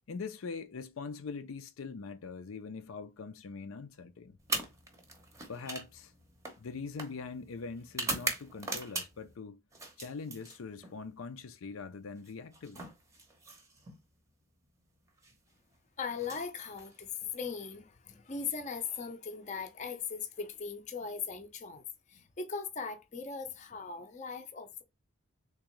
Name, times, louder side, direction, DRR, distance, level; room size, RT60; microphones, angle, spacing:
voice 1, 0.1-4.4 5.5-6.1 6.6-9.6 10.0-12.9, left 4 dB, 80° left, 0.5 m, -42 dB
sound 1, 4.4-9.3 9.7-11.0 12.2-14.0 15.1-15.3 16.1-17.3, right 3 dB, 15° right, 0.7 m, -40 dB
voice 2, 16.0-24.8, left 5 dB, 35° left, 0.6 m, -39 dB
3.6 x 3.0 x 3.0 m
head